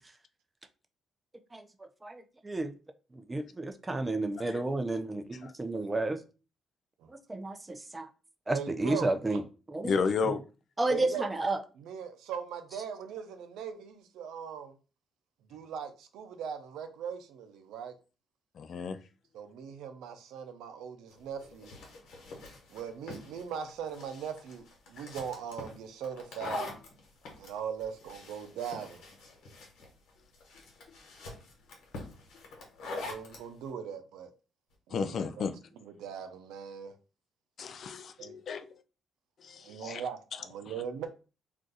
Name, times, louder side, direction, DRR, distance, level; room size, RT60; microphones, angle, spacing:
voice 1, 2.0-2.7 3.1-6.2 7.1-8.1 8.5-9.4 9.7-9.9 10.2-10.3 10.8-11.6, right 2 dB, 20° right, 0.4 m, -32 dB
voice 2, 8.5-9.1 10.9-11.3 11.8-14.8 15.5-17.9 19.3-21.7 22.7-26.7 27.4-29.0 32.9-34.3 34.9-35.4 35.8-36.9 38.2-38.4 39.6-41.1, right 7 dB, 90° right, 0.5 m, -40 dB
voice 3, 9.8-10.4 18.6-19.0 25.0-25.1 34.9-35.5 37.6-38.7 39.4-40.0, left 5 dB, 55° left, 0.3 m, -32 dB
sound 1, 21.1-33.5, left 3 dB, 80° left, 1.0 m, -44 dB
2.5 x 2.3 x 3.9 m
cardioid pair, 90°, 0 cm